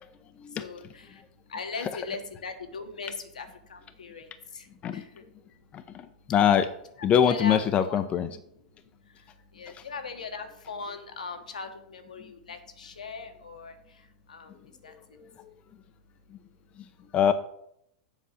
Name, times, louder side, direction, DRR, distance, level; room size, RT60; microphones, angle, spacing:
voice 1, 0.0-6.3 7.0-7.6 7.9-8.0 8.4-17.1, left 4 dB, 80° left, 6 dB, 1.3 m, -41 dB
voice 2, 5.7-6.7 7.0-8.3 14.9-15.5 16.3-16.4 17.1-17.3, left 9 dB, 30° left, 9 dB, 0.7 m, -24 dB
7.8 x 5.3 x 6.5 m, 0.72 s
hypercardioid pair, 100°, 4 cm